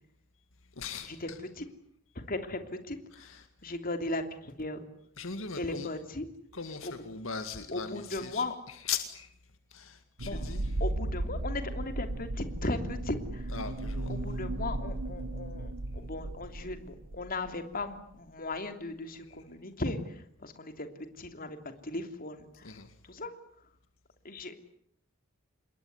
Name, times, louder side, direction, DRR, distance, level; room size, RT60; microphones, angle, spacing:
voice 1, 0.8-1.4 3.1-3.5 5.2-5.9 6.5-9.3 9.7-10.8 13.5-14.2 19.3-19.4 22.6-23.0, left 6 dB, 70° left, 9 dB, 2.1 m, -40 dB
voice 2, 2.3-3.3 3.6-4.8 5.6-6.2 6.8-7.0 7.7-8.5 10.2-10.5 10.8-13.5 14.1-20.9 21.2-22.8 23.1-23.3 24.2-24.5, left 2 dB, 45° left, 8 dB, 3.0 m, -37 dB
sound 1, 10.2-17.6 17.8-18.0 18.5-18.6, right 1 dB, 75° right, 1.3 m, -35 dB
27.5 x 21.5 x 9.7 m, 0.68 s
head